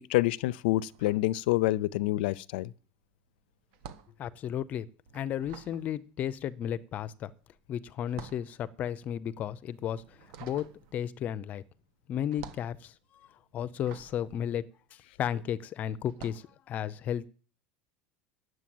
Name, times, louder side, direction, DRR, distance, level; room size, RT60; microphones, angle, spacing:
voice 1, 0.0-2.7, left 17 dB, 85° left, 0.5 m, -27 dB
sound 1, 0.8-2.0 2.3-15.5 16.0-16.5, right 7 dB, 60° right, 1.3 m, -51 dB
voice 2, 4.2-4.9 5.1-7.3 7.7-10.0 10.4-10.7 10.9-11.6 12.1-12.9 13.5-14.6 15.2-17.3, left 10 dB, 30° left, 0.6 m, -33 dB
10.0 x 7.9 x 7.7 m
cardioid pair, 170°, 5 cm